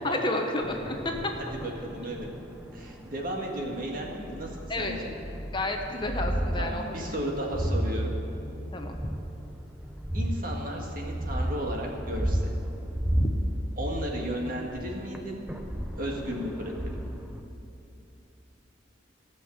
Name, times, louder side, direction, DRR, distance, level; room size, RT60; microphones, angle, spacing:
voice 1, 0.0-1.3 4.7-5.0 5.5-6.8 8.7-9.0 13.2-13.3, left 2 dB, 25° left, 3 dB, 0.8 m, -30 dB
sound 1, 0.6-17.4, equal, 5° right, 0.6 m, -33 dB
voice 2, 1.6-2.3 2.7-4.5 4.8-5.1 6.5-8.2 10.1-12.4 13.8-15.5 15.9-16.9, equal, 50° right, 0 dB, 1.8 m, -34 dB
16.5 x 6.3 x 7.4 m, 2.8 s
head